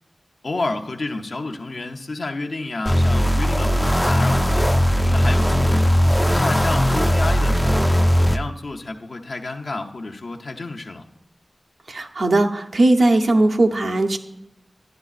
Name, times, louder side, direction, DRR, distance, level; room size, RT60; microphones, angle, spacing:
voice 1, 0.4-4.7 5.0-5.8 6.3-7.8 8.2-11.0, left 2 dB, 70° left, 3 dB, 0.7 m, -30 dB
sound 1, 2.9-8.4, equal, 10° left, 0.4 m, -18 dB
voice 2, 11.9-14.2, right 2 dB, 80° right, 4 dB, 0.7 m, -18 dB
11.5 x 10.0 x 2.4 m, 0.89 s
wide cardioid pair, 75°, 0 cm